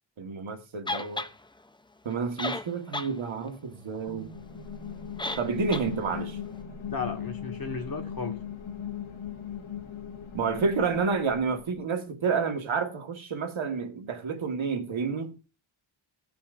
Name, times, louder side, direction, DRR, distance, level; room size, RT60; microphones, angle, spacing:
voice 1, 0.2-1.3 2.0-4.3 5.4-6.4 10.3-15.4, right 5 dB, 75° right, 1.5 m, -29 dB
sound 1, 0.9-1.3 2.1-2.2 2.4-3.1 3.5-3.6 5.2-5.5 5.7-5.9, left 2 dB, 10° left, 0.5 m, -32 dB
sound 2, 4.1-11.8, left 8 dB, 85° left, 1.6 m, -39 dB
voice 2, 6.9-8.3, left 4 dB, 45° left, 1.8 m, -34 dB
17.0 x 5.7 x 2.5 m
wide cardioid pair, 100°, 47 cm